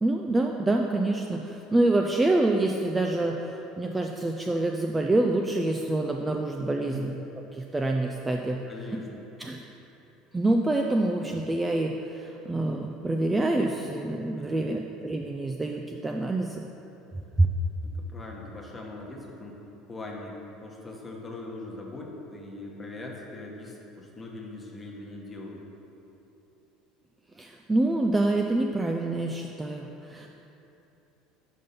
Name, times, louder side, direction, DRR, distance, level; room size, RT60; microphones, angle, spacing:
voice 1, 0.0-7.2 7.5-8.6 9.4-9.6 10.3-16.6 17.4-17.5 27.4-30.3, right 2 dB, 10° right, 1 dB, 0.3 m, -26 dB
voice 2, 8.7-9.3 14.4-14.7 18.0-19.6 19.9-25.6, left 2 dB, 15° left, -2 dB, 1.0 m, -41 dB
5.3 x 5.2 x 5.6 m, 2.9 s
supercardioid pair, 125°, 0 cm